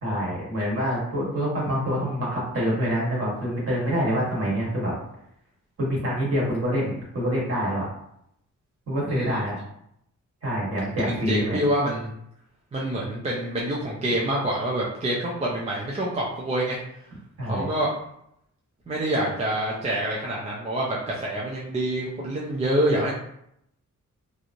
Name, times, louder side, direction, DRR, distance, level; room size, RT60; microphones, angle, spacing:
voice 1, 0.0-4.9 5.8-7.9 8.9-9.6 10.4-11.6 17.4-17.7, equal, 50° right, -5 dB, 1.2 m, -26 dB
voice 2, 9.1-9.4 11.0-12.1 12.7-16.8 17.5-17.9 18.9-23.1, right 1 dB, 20° right, -4 dB, 0.4 m, -26 dB
3.0 x 2.5 x 2.5 m, 0.75 s
wide cardioid pair, 175°, 31 cm